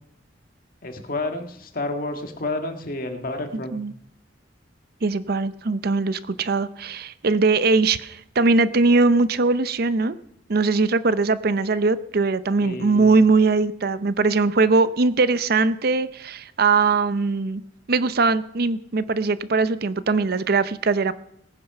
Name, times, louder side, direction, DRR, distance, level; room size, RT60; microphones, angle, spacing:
voice 1, 0.8-3.8 12.6-13.1, left 2 dB, 50° left, 6 dB, 1.7 m, -30 dB
voice 2, 5.0-10.2 10.5-17.6 17.9-21.1, right 3 dB, 55° right, 14 dB, 0.6 m, -21 dB
18.5 x 9.7 x 5.8 m, 0.72 s
head